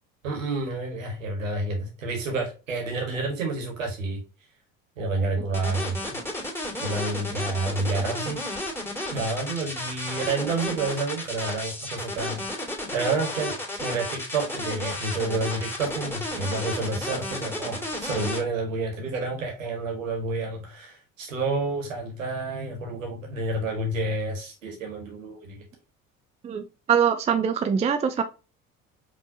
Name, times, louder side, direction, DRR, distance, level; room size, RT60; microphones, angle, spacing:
voice 1, 0.2-4.2 5.0-6.2 6.8-8.4 9.1-25.6, right 3 dB, 75° right, 1.6 m, -29 dB
sound 1, 5.5-18.4, left 1 dB, 5° left, 2.2 m, -32 dB
voice 2, 26.4-28.2, right 7 dB, 15° right, 0.4 m, -23 dB
5.1 x 3.0 x 2.7 m
figure-of-eight pair, 60°, 40 cm